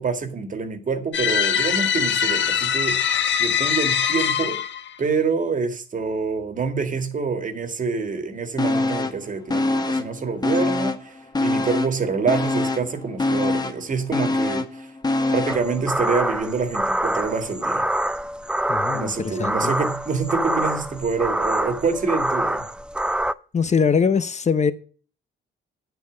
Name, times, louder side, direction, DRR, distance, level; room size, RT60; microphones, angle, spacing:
voice 1, 0.0-3.0 3.4-4.6 5.0-14.9 15.3-17.8 18.9-22.6, right 4 dB, 40° right, 2.0 m, -26 dB
sound 1, 1.1-4.9, left 8 dB, 70° left, 1.1 m, -22 dB
sound 2, 8.6-9.2 9.5-11.1 11.3-15.7 16.1-16.2, left 2 dB, 20° left, 1.5 m, -24 dB
sound 3, 15.5-23.3, right 1 dB, 5° right, 0.5 m, -26 dB
voice 2, 18.7-19.7 23.5-24.7, left 6 dB, 35° left, 0.9 m, -22 dB
9.4 x 8.2 x 5.1 m
cardioid pair, 90°, 20 cm